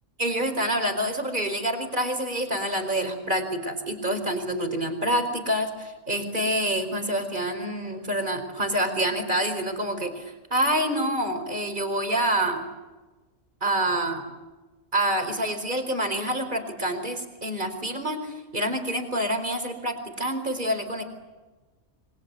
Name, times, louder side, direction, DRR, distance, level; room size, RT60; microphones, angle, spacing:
voice 1, 0.2-12.6 13.6-14.2 14.9-21.0, right 1 dB, 35° right, 7 dB, 4.7 m, -27 dB
28.5 x 24.5 x 8.3 m, 1.2 s
omnidirectional pair, 1.4 m